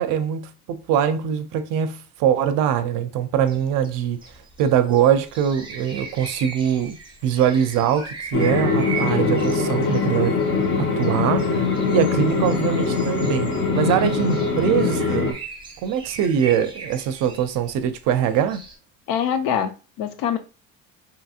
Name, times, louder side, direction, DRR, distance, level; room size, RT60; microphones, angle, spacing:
voice 1, 0.0-4.2 4.6-7.0 7.2-10.4 10.8-15.3 15.8-18.6, right 9 dB, 70° right, 0.5 m, -22 dB
sound 1, 3.5-18.7, right 4 dB, 15° right, 0.5 m, -39 dB
sound 2, 8.3-15.3, left 4 dB, 40° left, 0.7 m, -22 dB
voice 2, 19.1-20.4, left 8 dB, 80° left, 0.6 m, -24 dB
2.9 x 2.7 x 2.4 m
cardioid pair, 145°, 34 cm